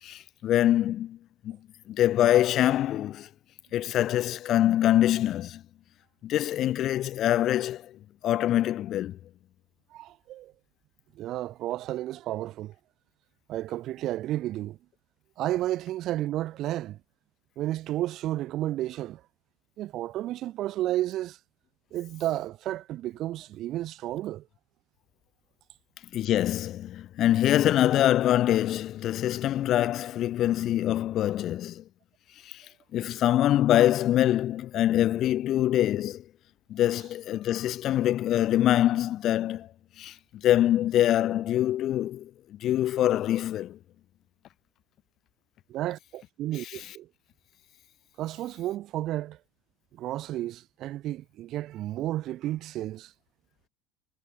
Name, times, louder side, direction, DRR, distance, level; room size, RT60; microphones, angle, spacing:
voice 1, 0.0-1.2 1.4-1.6 1.9-3.3 3.7-5.6 6.2-8.0 8.2-9.2 26.1-31.8 32.4-32.7 32.9-36.2 36.7-39.7 40.0-40.2 40.4-43.8 46.6-46.9, left 12 dB, 40° left, 3.7 m, -24 dB
voice 2, 9.9-10.5 11.2-12.7 13.5-14.8 15.4-17.0 17.6-19.2 19.8-21.4 21.9-24.5 45.7-47.1 48.2-49.4 50.0-53.1, right 14 dB, 40° right, 2.5 m, -32 dB
supercardioid pair, 150°, 0 cm